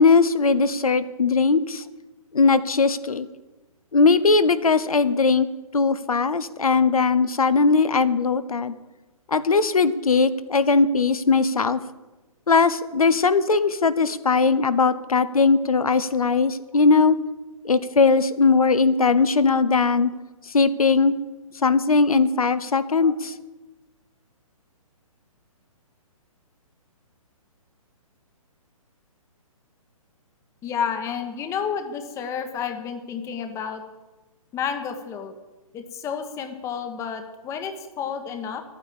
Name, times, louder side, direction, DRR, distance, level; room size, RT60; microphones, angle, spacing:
voice 1, 0.0-1.8 2.3-3.3 3.9-5.5 5.7-8.7 9.3-11.8 12.5-17.2 17.6-20.1 20.5-21.2 21.6-23.3, left 4 dB, 75° left, 14 dB, 1.0 m, -19 dB
voice 2, 30.6-33.8 34.5-35.3 35.7-38.6, left 7 dB, 15° left, 7 dB, 1.2 m, -30 dB
12.0 x 9.2 x 8.6 m, 1.1 s
figure-of-eight pair, 130°, 18 cm